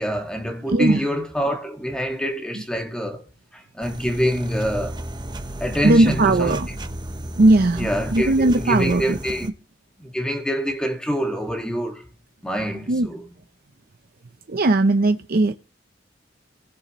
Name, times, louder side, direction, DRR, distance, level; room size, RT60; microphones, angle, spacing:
voice 1, 0.0-3.2 3.5-5.0 5.6-6.6 7.8-9.5 10.0-12.0 12.4-13.3, equal, 5° left, 1.9 m, -25 dB
voice 2, 0.7-1.1 5.8-6.7 7.4-9.2 12.9-13.1 14.5-15.5, right 2 dB, 55° right, 0.7 m, -18 dB
sound 1, 3.8-9.5, right 1 dB, 25° right, 1.0 m, -34 dB
19.0 x 6.7 x 3.0 m
head